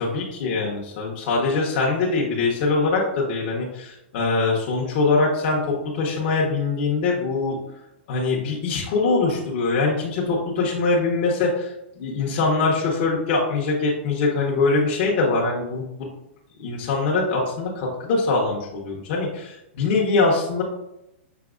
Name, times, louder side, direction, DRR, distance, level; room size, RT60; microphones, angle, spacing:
voice 1, 0.0-7.6 8.1-16.1 16.6-20.6, left 3 dB, 45° left, -3 dB, 0.9 m, -23 dB
5.9 x 2.9 x 2.5 m, 0.85 s
hypercardioid pair, 150°, 7 cm